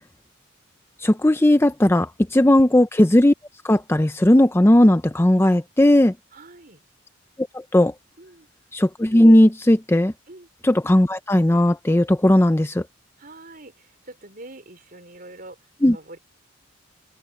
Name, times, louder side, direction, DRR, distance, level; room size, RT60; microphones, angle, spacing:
voice 1, 1.0-3.3 3.6-6.1 7.7-7.9 8.7-10.1 10.6-12.8 15.8-16.0, left 1 dB, 10° left, 0.5 m, -16 dB
voice 2, 6.3-6.8 8.2-8.5 10.3-10.5 13.2-16.2, right 2 dB, 45° right, 5.1 m, -44 dB
open air
head